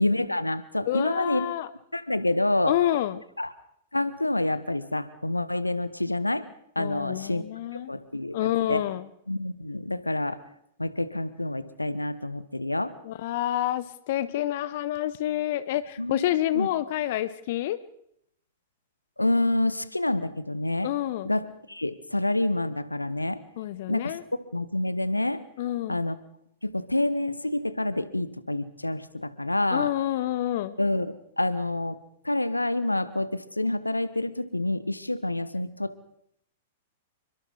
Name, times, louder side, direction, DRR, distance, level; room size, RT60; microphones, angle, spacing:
voice 1, 0.0-1.5 1.9-2.8 3.4-3.5 3.9-6.5 6.7-7.4 7.9-8.8 9.3-10.4 10.8-12.9 16.0-16.2 16.5-16.7 19.2-20.9 21.2-23.4 23.9-24.2 24.5-25.4 25.9-26.2 26.6-29.9 30.8-32.0 32.2-35.9, left 1 dB, 85° left, 15 dB, 1.2 m, -27 dB
voice 2, 0.9-1.7 2.7-3.2 6.8-7.9 8.3-9.0 13.0-17.8 20.8-21.3 23.6-24.2 25.6-26.0 29.7-30.7, left 13 dB, 50° left, 16 dB, 0.9 m, -28 dB
28.5 x 23.5 x 4.0 m, 0.73 s
figure-of-eight pair, 100°, 0 cm